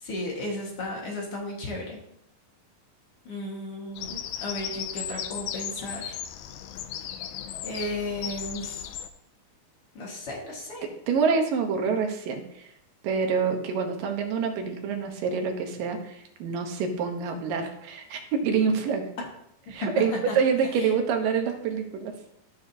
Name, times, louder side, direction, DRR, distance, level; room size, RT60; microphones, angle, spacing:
voice 1, 0.0-2.0 3.3-6.2 7.6-8.9 10.0-10.8 20.3-20.4, left 1 dB, 45° left, -2 dB, 2.2 m, -34 dB
Bird vocalization bird call bird song, 4.0-9.1, left 10 dB, 80° left, 2.3 m, -36 dB
voice 2, 11.1-12.7 13.0-19.1 19.7-22.1, right 5 dB, 70° right, 4 dB, 2.7 m, -26 dB
14.0 x 6.4 x 2.8 m, 0.76 s
omnidirectional pair, 4.2 m